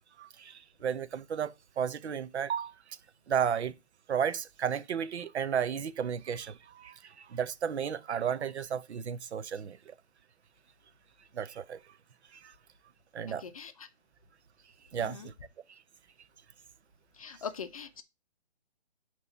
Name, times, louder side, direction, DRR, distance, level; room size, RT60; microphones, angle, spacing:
voice 1, 0.2-2.7 3.3-3.7 4.1-9.9 11.3-11.8 12.4-12.5 13.1-13.4 14.9-15.3, right 8 dB, 80° right, 0.7 m, -33 dB
voice 2, 13.3-13.9 15.0-15.3 17.2-18.0, left 6 dB, 35° left, 0.5 m, -42 dB
7.7 x 3.0 x 5.6 m
hypercardioid pair, 160°, 33 cm